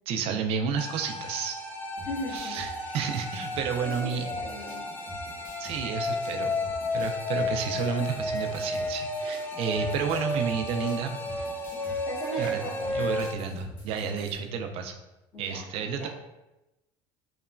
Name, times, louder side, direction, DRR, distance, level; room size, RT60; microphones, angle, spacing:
voice 1, 0.1-1.6 2.3-4.3 5.6-6.5 6.9-11.1 12.4-12.6 12.9-14.9 15.4-16.1, right 6 dB, 60° right, 5 dB, 0.4 m, -31 dB
sound 1, 0.8-13.3, left 1 dB, 15° left, 0.4 m, -33 dB
sound 2, 2.0-14.3, equal, 90° left, 1.0 m, -46 dB
voice 2, 2.0-3.0 3.8-4.8 9.3-9.5 11.7-12.9 15.3-15.7 16.0-16.1, left 1 dB, 45° left, -5 dB, 1.0 m, -38 dB
3.0 x 2.1 x 2.4 m, 0.98 s
supercardioid pair, 95°, 11 cm